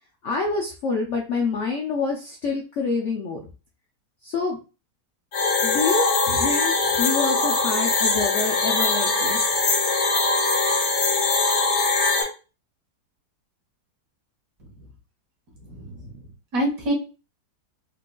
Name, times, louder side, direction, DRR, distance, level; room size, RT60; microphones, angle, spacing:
voice 1, 0.2-3.4 4.2-4.6 5.6-9.5, left 4 dB, 70° left, 1 dB, 0.7 m, -27 dB
sound 1, 5.3-12.2, left 3 dB, 85° left, 1.6 m, -22 dB
voice 2, 15.5-16.9, right 1 dB, 60° right, -2 dB, 1.6 m, -29 dB
4.4 x 2.5 x 2.2 m, 0.32 s
omnidirectional pair, 1.8 m